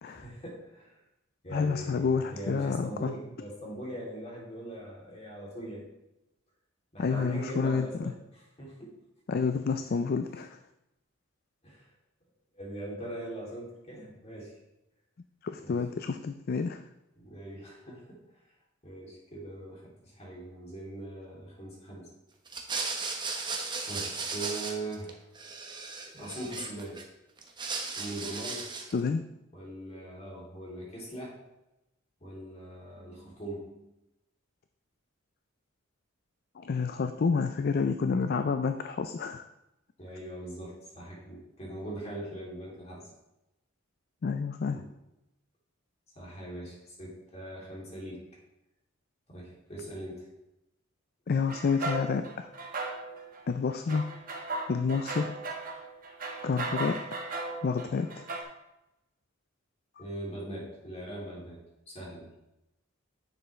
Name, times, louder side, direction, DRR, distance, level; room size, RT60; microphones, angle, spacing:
voice 1, 0.0-1.0 1.4-5.8 6.9-8.9 11.6-11.9 12.5-14.5 15.6-15.7 17.2-18.2 18.8-22.1 23.8-25.2 26.1-27.0 28.0-28.7 29.1-29.2 29.5-31.4 32.2-33.9 40.0-43.1 44.7-44.8 46.1-48.2 49.3-50.3 60.0-61.6 61.9-62.3, right 1 dB, 35° left, -4 dB, 2.9 m, -41 dB
voice 2, 1.5-3.1 7.0-8.1 9.3-10.6 15.4-16.8 28.9-29.2 36.6-39.4 44.2-44.8 51.3-52.5 53.5-54.1 54.7-55.4 56.4-57.0 57.6-58.3, left 5 dB, 50° left, 9 dB, 0.4 m, -29 dB
sound 1, 22.5-25.1 25.3-27.0 27.4-29.0, right 4 dB, 25° right, 1.0 m, -36 dB
sound 2, 51.5-53.4 53.7-58.4, right 2 dB, 45° right, 1.4 m, -37 dB
10.0 x 7.1 x 3.2 m, 0.91 s
head